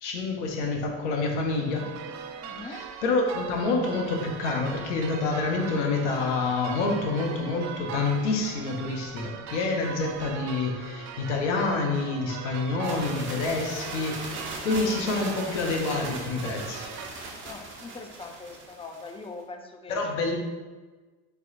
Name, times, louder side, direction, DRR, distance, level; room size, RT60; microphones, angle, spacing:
voice 1, 0.0-1.8 2.6-14.3 14.6-16.9 19.9-20.4, left 3 dB, 85° left, 2 dB, 1.0 m, -27 dB
sound 1, 1.5-17.1, right 7 dB, 50° right, 0.5 m, -40 dB
voice 2, 2.4-2.8 12.9-13.1 17.4-20.1, left 3 dB, 15° left, 3 dB, 0.6 m, -42 dB
sound 2, 12.8-19.3, right 2 dB, 35° right, 1.3 m, -39 dB
4.5 x 4.3 x 2.6 m, 1.3 s
hypercardioid pair, 75°, 35 cm